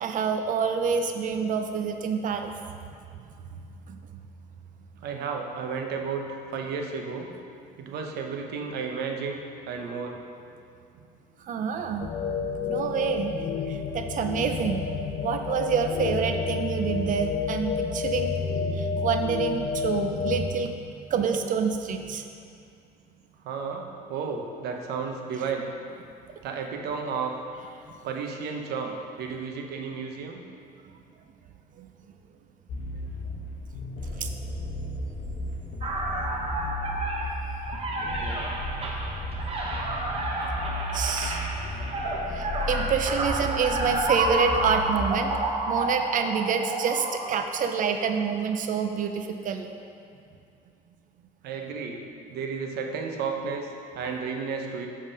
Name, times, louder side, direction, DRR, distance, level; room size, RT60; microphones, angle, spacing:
voice 1, 0.0-2.5 3.9-4.0 11.4-12.1 12.6-13.3 13.7-14.8 15.2-18.3 18.7-22.3 31.8-31.9 34.2-34.3 40.9-41.5 42.3-45.3 45.7-49.7, right 6 dB, 50° right, 6 dB, 0.4 m, -27 dB
voice 2, 5.0-7.3 7.8-9.4 9.7-10.2 23.4-25.7 26.4-27.3 28.0-30.4 38.1-38.4 51.4-54.9, right 5 dB, 75° right, 2 dB, 0.8 m, -33 dB
sound 1, 12.0-20.5, left 5 dB, 40° left, 0.4 m, -30 dB
sound 2, 32.7-45.2, left 1 dB, 65° left, 0.9 m, -34 dB
sound 3, 35.8-48.1, right 2 dB, 35° right, 1.0 m, -30 dB
7.1 x 3.6 x 5.4 m, 2.5 s
cardioid pair, 110°, 17 cm